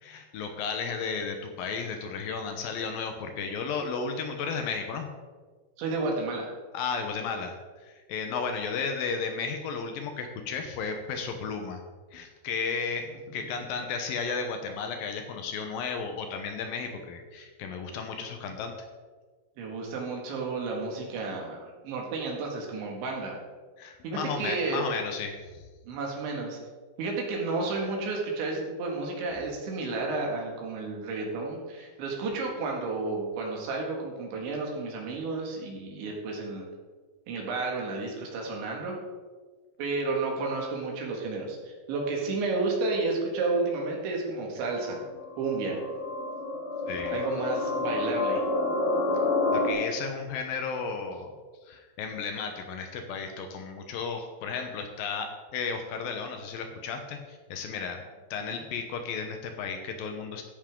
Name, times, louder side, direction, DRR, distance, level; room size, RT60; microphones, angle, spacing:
voice 1, 0.0-5.1 6.7-7.6 7.8-11.8 12.1-18.7 23.8-25.6 46.9-47.2 49.5-51.3 51.7-58.0 58.3-60.4, left 5 dB, 80° left, 5 dB, 2.0 m, -34 dB
voice 2, 5.8-6.5 19.6-23.4 24.0-24.8 25.9-26.6 27.0-36.7 37.3-39.0 39.8-45.1 45.4-45.8 47.1-48.4 58.4-58.6, right 3 dB, 70° right, -1 dB, 4.2 m, -31 dB
sound 1, 44.6-49.7, left 3 dB, 60° left, 3.4 m, -29 dB
14.5 x 10.0 x 3.8 m, 1.4 s
omnidirectional pair, 5.5 m